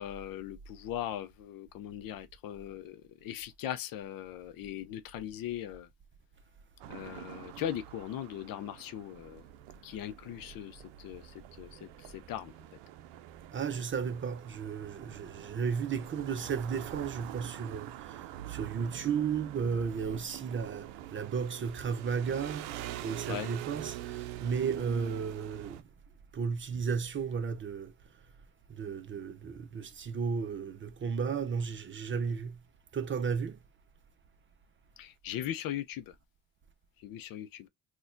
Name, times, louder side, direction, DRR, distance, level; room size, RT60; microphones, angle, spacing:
voice 1, 0.0-5.9 6.9-9.4 9.8-11.9 12.1-12.5 23.3-23.5 35.0-36.0 37.0-37.7, left 11 dB, 55° left, 0.6 m, -39 dB
sound 1, 6.8-25.8, right 13 dB, 75° right, 0.6 m, -45 dB
voice 2, 13.5-22.8 23.0-25.8 26.3-27.9 28.7-32.6 32.9-33.6, right 6 dB, 30° right, 0.6 m, -34 dB
4.1 x 2.3 x 2.5 m
supercardioid pair, 80°, 43 cm